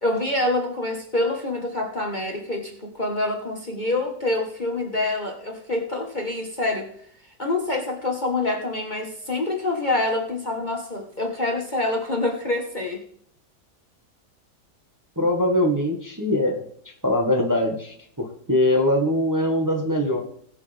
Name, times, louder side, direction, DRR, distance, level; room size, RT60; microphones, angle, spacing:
voice 1, 0.0-6.9 7.4-13.0, left 2 dB, 30° left, 1 dB, 1.5 m, -26 dB
voice 2, 15.2-16.6 17.0-20.2, left 1 dB, 10° right, 1 dB, 1.5 m, -22 dB
19.5 x 6.6 x 3.5 m, 0.66 s
omnidirectional pair, 1.8 m